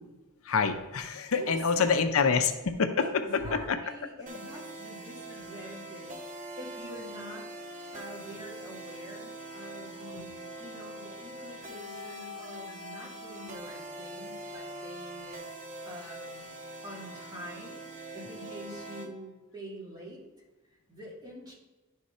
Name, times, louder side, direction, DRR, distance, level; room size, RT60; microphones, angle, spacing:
voice 1, 0.4-3.1 3.5-3.8, left 5 dB, 70° left, 8 dB, 0.6 m, -26 dB
voice 2, 1.7-2.4 3.0-6.2 6.6-7.5 7.9-15.4 15.8-16.5 16.8-20.2 20.9-21.5, equal, 20° right, -4 dB, 1.9 m, -45 dB
sound 1, 4.3-19.1, right 1 dB, 35° right, 0.9 m, -43 dB
10.5 x 3.7 x 4.2 m, 1.1 s
head